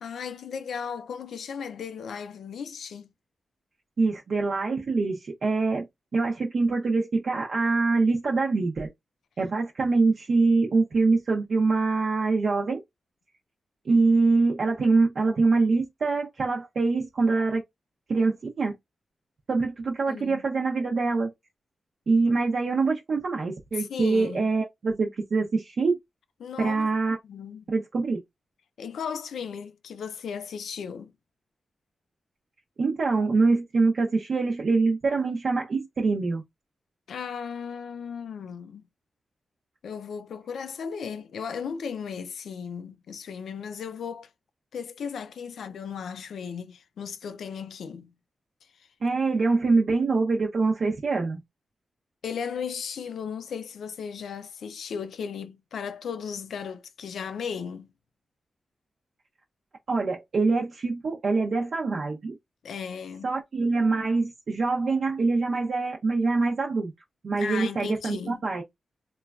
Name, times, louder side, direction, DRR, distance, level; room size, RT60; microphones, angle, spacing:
voice 1, 0.0-3.1 20.1-20.4 23.7-24.5 26.4-26.9 27.2-27.7 28.8-31.1 37.1-38.8 39.8-44.3 44.7-48.1 52.2-57.9 62.6-63.3 67.4-68.4, left 6 dB, 90° left, 0.3 m, -36 dB
voice 2, 4.0-5.9 6.1-8.9 9.4-12.8 13.8-17.6 18.1-18.7 19.5-21.3 22.1-26.0 26.6-27.2 27.7-28.2 32.8-36.4 49.0-51.4 59.9-62.4 63.2-66.9 67.2-68.6, right 3 dB, 60° right, 0.5 m, -24 dB
3.0 x 2.2 x 2.3 m
cardioid pair, 90°, 0 cm